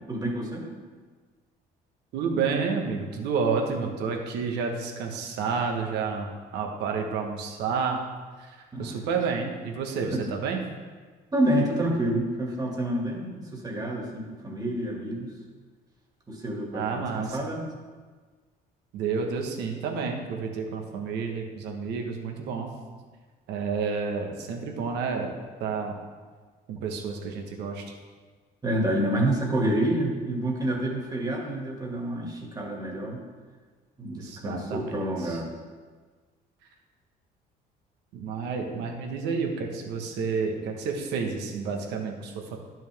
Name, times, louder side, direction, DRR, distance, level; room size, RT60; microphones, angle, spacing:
voice 1, 0.1-0.7 8.7-9.0 10.1-10.2 11.3-15.3 16.3-17.7 28.6-33.2 34.0-35.5, right 1 dB, 20° right, -1 dB, 2.0 m, -28 dB
voice 2, 2.1-8.0 8.4-10.6 16.7-17.5 18.9-22.7 23.5-25.3 25.6-26.0 26.7-28.0 34.1-35.4 38.1-42.6, right 5 dB, 85° right, 2 dB, 1.3 m, -30 dB
11.0 x 6.2 x 3.5 m, 1.4 s
cardioid pair, 110°, 17 cm